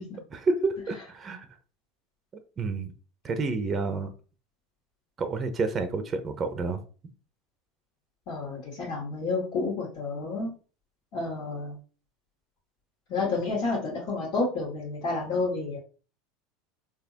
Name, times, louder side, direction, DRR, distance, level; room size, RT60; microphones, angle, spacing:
voice 1, 0.3-1.5 2.6-2.9 3.2-4.1 5.2-6.8, right 3 dB, 30° right, 8 dB, 0.7 m, -29 dB
voice 2, 8.3-10.5 11.1-11.8 13.1-15.8, left 3 dB, 60° left, -7 dB, 2.1 m, -30 dB
4.1 x 2.8 x 2.9 m, 0.37 s
hypercardioid pair, 100°, 0 cm